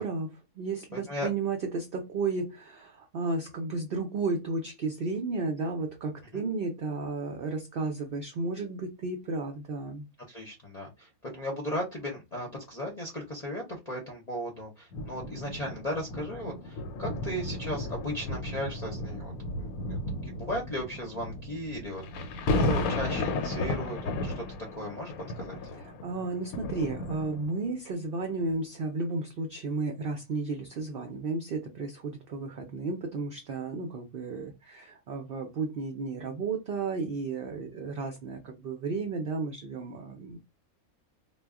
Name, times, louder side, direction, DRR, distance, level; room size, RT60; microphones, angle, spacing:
voice 1, 0.0-10.1 25.7-40.4, right 3 dB, 60° right, 0.6 m, -33 dB
voice 2, 0.9-1.3 6.3-6.4 10.3-19.3 19.6-24.4 24.8-25.6, equal, 40° left, 0.6 m, -36 dB
sound 1, 14.9-27.7 28.4-28.5, left 2 dB, 80° left, 1.0 m, -34 dB
2.3 x 2.1 x 3.4 m
omnidirectional pair, 1.5 m